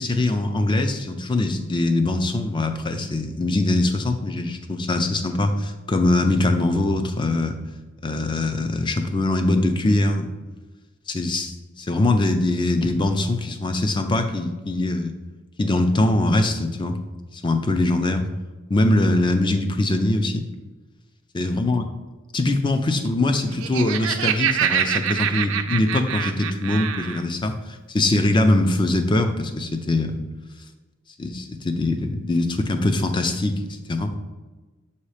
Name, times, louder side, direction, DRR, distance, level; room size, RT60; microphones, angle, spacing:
voice 1, 0.0-7.6 8.0-10.3 11.1-15.1 15.6-17.0 17.3-18.3 18.7-20.4 21.3-21.8 22.3-30.2 31.2-33.6 33.9-34.1, left 2 dB, 25° left, 7 dB, 0.5 m, -22 dB
Laughter, 23.4-27.2, right 9 dB, 75° right, 0.4 m, -25 dB
7.1 x 2.9 x 4.9 m, 1.2 s
head